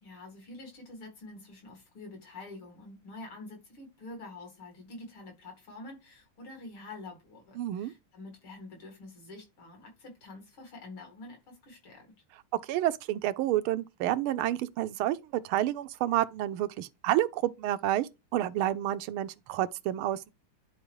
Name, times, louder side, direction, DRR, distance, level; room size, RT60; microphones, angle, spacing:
voice 1, 0.0-12.1, left 2 dB, 75° left, 3.2 m, -47 dB
voice 2, 7.6-7.9 12.6-20.3, right 13 dB, 85° right, 1.5 m, -29 dB
10.0 x 4.4 x 3.1 m
omnidirectional pair, 2.3 m